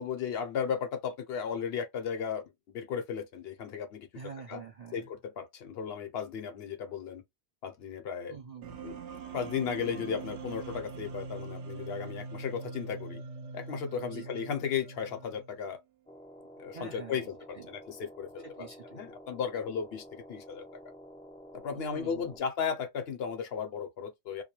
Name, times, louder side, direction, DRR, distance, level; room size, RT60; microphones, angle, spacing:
voice 1, 0.0-4.1 4.5-4.6 4.9-7.2 7.6-8.3 8.8-9.0 9.3-13.2 13.5-15.8 16.6-17.3 17.7-18.7 18.9-20.6 21.5-24.4, left 7 dB, 65° left, 0.8 m, -35 dB
voice 2, 4.1-5.1 8.3-8.9 14.0-14.5 16.7-17.3 17.5-17.7 18.4-19.0 21.7-22.4, right 6 dB, 50° right, 0.5 m, -46 dB
sound 1, 8.6-15.6, right 4 dB, 75° right, 0.9 m, -43 dB
sound 2, 16.1-22.4, equal, 5° left, 0.5 m, -50 dB
2.3 x 2.2 x 2.9 m
omnidirectional pair, 1.2 m